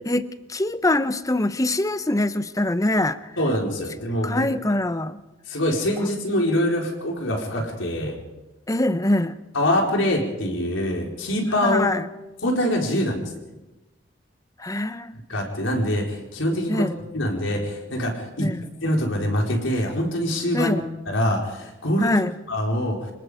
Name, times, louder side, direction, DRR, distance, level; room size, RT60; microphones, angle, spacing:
voice 1, 0.1-3.2 4.2-5.2 8.7-9.4 11.6-12.1 14.6-15.2 16.7-16.9 18.4-18.6 20.5-20.8 22.0-22.3, left 1 dB, 20° left, 13 dB, 0.8 m, -23 dB
voice 2, 3.4-4.5 5.5-8.2 9.5-11.9 12.4-13.3 15.3-18.5 18.8-20.8 21.1-22.1 22.5-23.1, left 1 dB, 85° left, 0 dB, 4.5 m, -24 dB
27.5 x 19.0 x 5.1 m, 1.1 s
head